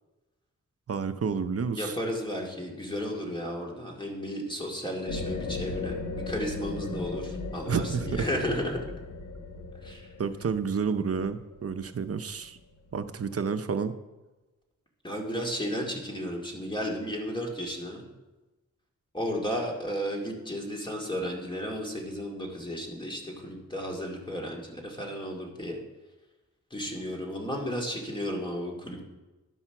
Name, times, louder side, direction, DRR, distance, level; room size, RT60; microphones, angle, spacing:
voice 1, 0.9-2.0 7.7-8.3 10.2-12.6 12.9-13.9, right 6 dB, 50° right, 11 dB, 0.6 m, -30 dB
voice 2, 1.7-8.8 9.8-10.1 15.0-18.1 19.1-25.8 26.7-29.0, equal, 15° left, -1 dB, 2.2 m, -33 dB
sound 1, 5.1-12.3, left 3 dB, 90° left, 1.1 m, -37 dB
11.5 x 5.6 x 5.8 m, 1.1 s
cardioid pair, 70°, 30 cm